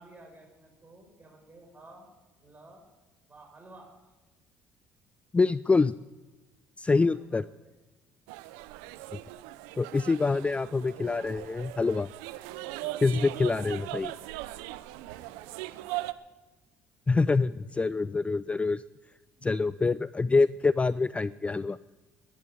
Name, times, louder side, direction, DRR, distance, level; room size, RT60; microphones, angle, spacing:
voice 1, 0.0-2.1 2.4-2.9 3.3-3.9 7.1-7.4 12.5-13.4 15.0-15.9 17.1-17.5 19.4-19.5, right 2 dB, 25° right, 2 dB, 5.9 m, -53 dB
voice 2, 5.3-5.9 6.8-7.5 9.8-12.1 13.0-14.2 17.1-17.5 17.8-18.8 19.4-21.8, left 3 dB, 20° left, 18 dB, 0.4 m, -25 dB
sound 1, 8.3-16.1, right 17 dB, 85° right, 0.6 m, -39 dB
11.5 x 11.5 x 9.5 m, 1.2 s
supercardioid pair, 70°, 6 cm